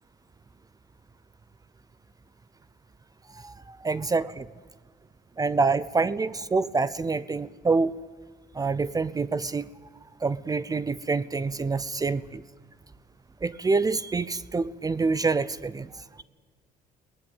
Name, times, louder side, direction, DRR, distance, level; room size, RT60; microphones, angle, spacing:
voice 1, 3.4-4.5 5.4-8.0 8.5-9.7 10.2-12.4 13.4-15.9, right 4 dB, 20° right, 18 dB, 0.6 m, -26 dB
22.0 x 18.5 x 9.1 m, 1.5 s
cardioid pair, 110°, 17 cm